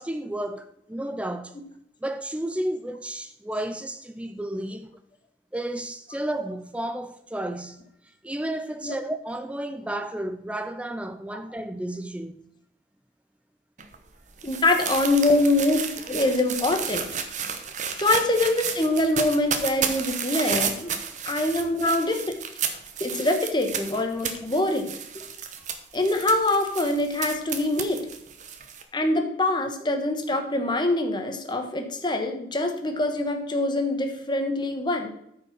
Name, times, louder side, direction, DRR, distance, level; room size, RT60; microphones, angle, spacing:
voice 1, 0.0-1.6 2.0-4.9 5.5-7.8 8.2-12.4 21.8-22.0, right 1 dB, 5° right, 0.4 m, -32 dB
sound 1, 13.8-28.8, right 7 dB, 45° right, 1.0 m, -32 dB
voice 2, 14.4-15.8 16.1-17.0 18.0-20.9 21.2-22.2 23.0-24.9 25.9-28.0 28.9-35.1, left 2 dB, 25° left, 1.2 m, -24 dB
9.6 x 5.4 x 5.9 m
head